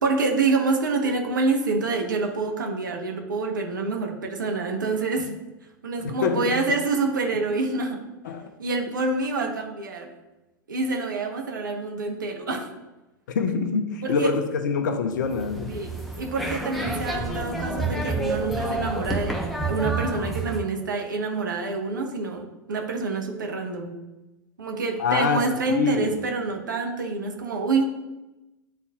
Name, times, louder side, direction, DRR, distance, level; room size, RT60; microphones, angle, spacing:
voice 1, 0.0-5.4 5.8-8.0 8.6-10.1 10.7-12.7 14.0-14.3 15.7-19.4 19.7-24.0 24.6-27.8, right 3 dB, 75° right, 3 dB, 1.1 m, -27 dB
voice 2, 6.0-6.6 8.2-8.5 13.3-15.7 25.0-26.2, left 5 dB, 65° left, 8 dB, 0.7 m, -25 dB
sound 1, 15.2-20.6, right 2 dB, ahead, 0.9 m, -29 dB
9.8 x 4.1 x 2.4 m, 1.0 s
figure-of-eight pair, 90°, 11 cm